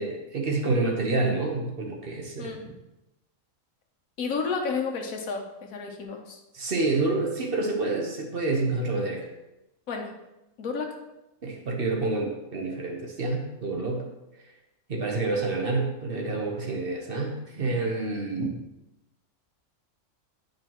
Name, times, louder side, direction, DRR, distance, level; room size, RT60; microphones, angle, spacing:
voice 1, 0.0-2.6 6.5-9.3 11.4-14.0 14.9-18.5, right 3 dB, 50° right, 1 dB, 1.0 m, -28 dB
voice 2, 2.4-2.7 4.2-6.4 9.9-10.1 10.6-11.0 13.7-13.9 18.4-18.5, left 5 dB, 80° left, 3 dB, 1.3 m, -32 dB
8.9 x 5.2 x 2.9 m, 0.95 s
omnidirectional pair, 1.4 m